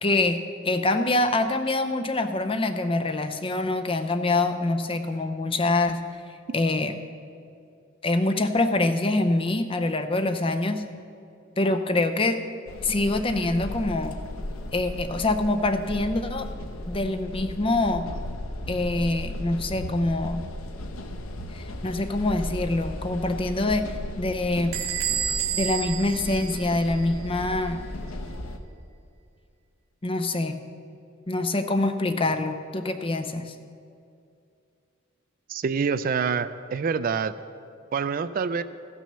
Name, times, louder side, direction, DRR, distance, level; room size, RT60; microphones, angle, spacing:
voice 1, 0.0-0.4 0.6-6.0 6.5-6.9 8.0-10.8 11.6-12.4 12.8-14.2 14.7-16.5 16.9-18.1 18.7-20.5 21.5-23.9 24.2-24.7 25.6-27.8 30.0-30.5 31.3-33.5, left 2 dB, 25° left, 7 dB, 0.6 m, -25 dB
sound 1, 12.7-28.6, left 1 dB, 80° left, 0.8 m, -36 dB
Bell / Door, 24.7-27.2, right 9 dB, 80° right, 1.3 m, -30 dB
voice 2, 35.5-37.3 37.9-38.6, right 5 dB, 40° right, 13 dB, 0.3 m, -26 dB
14.0 x 6.2 x 6.8 m, 2.5 s
head